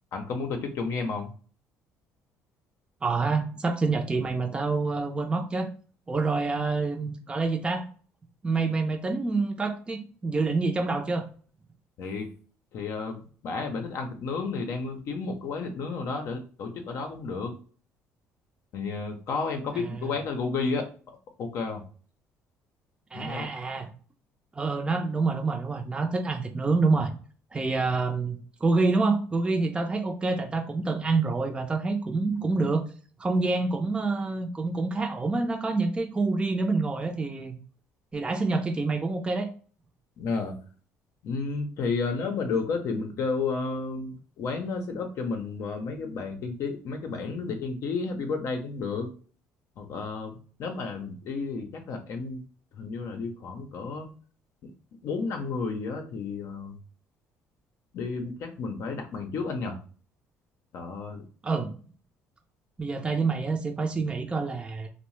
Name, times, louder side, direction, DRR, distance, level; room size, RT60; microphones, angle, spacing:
voice 1, 0.1-1.3 12.0-12.3 12.7-17.5 18.7-20.9 21.4-21.8 23.1-23.5 40.2-40.5 41.2-49.1 49.8-52.4 52.7-54.1 54.6-54.7 55.0-56.8 57.9-59.8 60.7-61.2, left 4 dB, 65° left, 4 dB, 0.6 m, -32 dB
voice 2, 3.0-5.7 6.1-7.9 8.4-11.2 19.7-19.9 23.1-23.9 24.5-27.1 27.5-32.9 33.2-37.5 38.1-39.5 61.4-61.7 62.8-64.9, right 3 dB, 20° right, 4 dB, 0.4 m, -27 dB
2.7 x 2.0 x 3.1 m, 0.41 s
cardioid pair, 100°, 5 cm